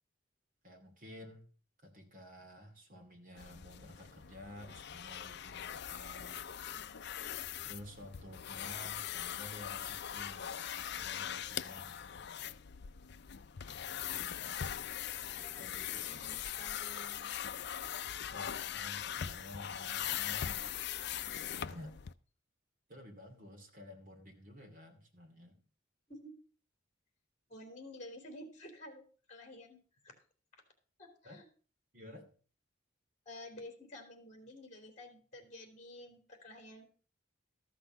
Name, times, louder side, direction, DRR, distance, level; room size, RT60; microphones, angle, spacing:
voice 1, 0.6-1.5 1.8-6.4 7.6-10.6 10.9-12.7 15.6-16.1 18.3-20.7 21.7-22.0 22.9-25.6 31.2-31.4 31.9-32.3, left 1 dB, 45° right, 3 dB, 2.5 m, -52 dB
sound 1, 3.4-22.1, left 9 dB, 60° left, 0.5 m, -41 dB
voice 2, 11.1-11.4 15.4-17.3 21.6-21.7 26.1-26.4 27.5-29.0 29.3-30.1 31.0-31.5 33.2-36.9, left 1 dB, 40° left, 5 dB, 3.2 m, -51 dB
13.5 x 6.1 x 6.4 m, 0.40 s
head